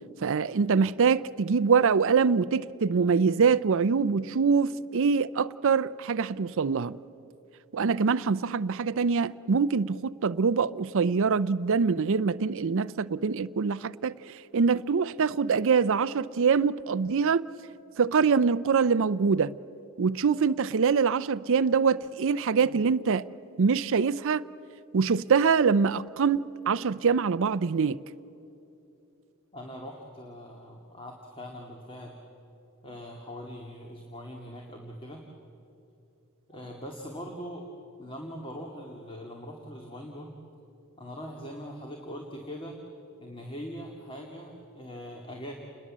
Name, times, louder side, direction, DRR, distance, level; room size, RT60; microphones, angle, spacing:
voice 1, 0.2-7.0 7.7-14.1 14.5-17.5 18.0-19.5 20.0-23.3 23.6-24.4 24.9-28.0, right 5 dB, 60° right, 0.5 m, -24 dB
voice 2, 29.5-32.2 32.8-35.2 36.5-37.7 38.0-40.3 41.0-42.8 43.2-45.5, equal, 25° left, 2.2 m, -41 dB
29.0 x 21.0 x 7.4 m
head